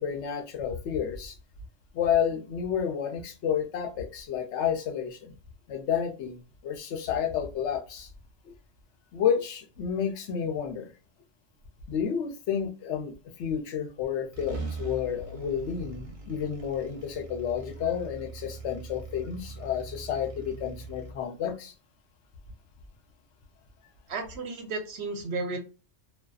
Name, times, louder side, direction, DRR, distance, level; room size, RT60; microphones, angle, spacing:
voice 1, 0.0-1.3 1.9-5.3 5.7-6.4 6.6-8.1 9.1-10.9 11.9-21.7, left 8 dB, 75° left, 0.8 m, -30 dB
sound 1, 14.0-14.1 14.3-21.1, right 3 dB, 50° right, 0.4 m, -41 dB
voice 2, 24.1-25.6, right 3 dB, 65° right, 0.8 m, -33 dB
2.5 x 2.2 x 2.3 m
omnidirectional pair, 1.2 m